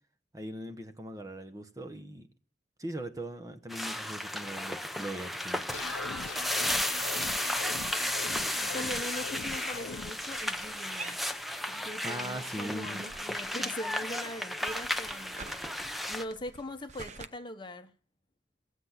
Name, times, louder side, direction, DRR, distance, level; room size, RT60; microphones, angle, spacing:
voice 1, 0.3-2.3 2.8-5.6 12.0-13.0, right 1 dB, 20° right, 1.1 m, -40 dB
sound 1, 3.7-16.3, left 1 dB, ahead, 0.7 m, -34 dB
sound 2, 5.7-10.1, left 5 dB, 85° left, 0.6 m, -41 dB
voice 2, 8.6-11.2 11.8-15.5 16.1-17.9, left 1 dB, 25° left, 1.0 m, -41 dB
sound 3, 9.8-11.9 12.2-14.0 14.3-17.3, right 3 dB, 40° right, 0.7 m, -48 dB
17.5 x 8.2 x 5.9 m
head